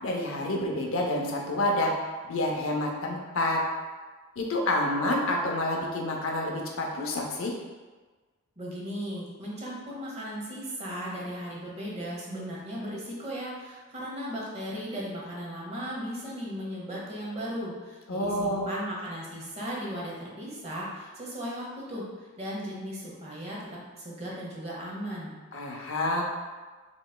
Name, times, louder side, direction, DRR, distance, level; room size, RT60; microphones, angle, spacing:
voice 1, 0.0-1.9 2.2-3.6 4.4-7.5 18.1-18.7 25.5-26.2, left 1 dB, 70° left, 0 dB, 0.6 m, -28 dB
voice 2, 8.6-22.0 22.4-23.6 24.0-25.3, equal, 30° right, -5 dB, 0.8 m, -36 dB
5.0 x 3.1 x 2.2 m, 1.3 s
head